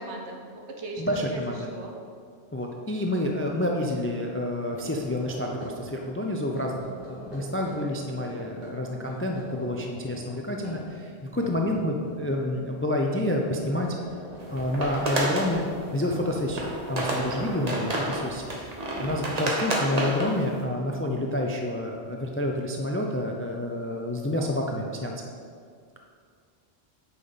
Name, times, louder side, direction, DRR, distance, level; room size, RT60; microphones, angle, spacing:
voice 1, 0.0-1.4 1.7-2.0, right 2 dB, 80° right, 1 dB, 1.3 m, -37 dB
voice 2, 1.0-1.7 2.5-13.9 14.5-15.7 15.9-18.6 19.0-25.1, left 1 dB, 20° left, 1 dB, 0.3 m, -29 dB
sound 1, 3.3-3.5 3.9-4.0 4.6-12.6 12.9-13.2 13.5-18.6, equal, 55° right, 2.3 m, -43 dB
sound 2, 14.4-15.5 16.2-16.3 16.5-20.6, right 1 dB, 40° right, 1.0 m, -30 dB
8.4 x 5.6 x 4.0 m, 2.2 s
omnidirectional pair, 1.1 m